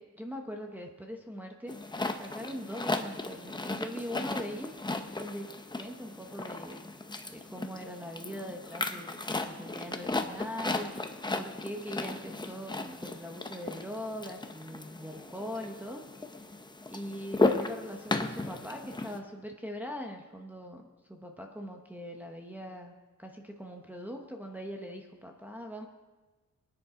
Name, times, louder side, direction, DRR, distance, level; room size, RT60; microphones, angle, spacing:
voice 1, 0.0-1.8 2.1-4.7 5.2-5.5 5.8-6.8 7.3-10.9 11.3-16.0 16.9-22.9 23.2-25.9, equal, 5° right, 1 dB, 1.0 m, -41 dB
sound 1, 1.7-19.2, left 2 dB, 15° left, 0.7 m, -35 dB
22.5 x 9.9 x 3.8 m, 1.2 s
wide cardioid pair, 155°, 30 cm